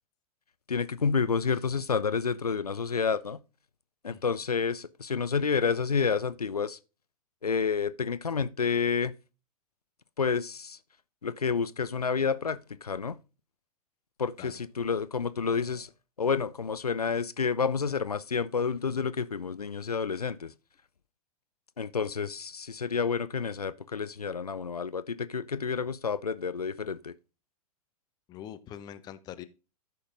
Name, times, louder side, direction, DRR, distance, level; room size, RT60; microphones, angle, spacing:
voice 1, 0.7-3.4 4.0-6.8 7.4-9.1 10.2-10.8 11.2-13.2 14.2-15.9 16.2-20.5 21.8-27.1, left 5 dB, 80° left, 0.4 m, -29 dB
voice 2, 28.3-29.4, left 10 dB, 20° left, 0.6 m, -43 dB
13.5 x 5.4 x 2.5 m
figure-of-eight pair, 105°, 19 cm